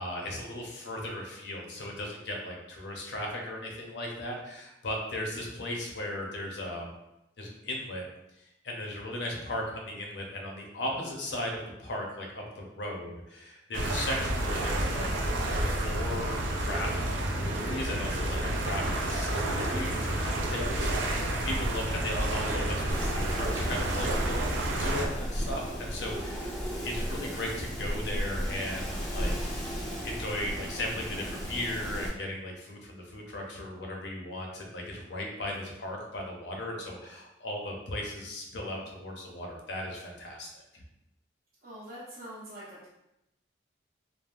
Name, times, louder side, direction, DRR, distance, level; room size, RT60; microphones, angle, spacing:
voice 1, 0.0-6.9 7.4-8.0 8.6-15.1 15.7-17.0 17.3-24.5 24.8-26.6 26.8-29.4 30.0-40.5, left 1 dB, 70° left, 0 dB, 0.6 m, -37 dB
sound 1, 13.7-25.1, right 1 dB, 85° right, 0.5 m, -30 dB
Wind, 22.9-32.1, equal, ahead, 0.5 m, -34 dB
voice 2, 41.6-42.9, equal, 50° right, -11 dB, 0.7 m, -44 dB
3.3 x 2.0 x 2.4 m, 0.88 s
head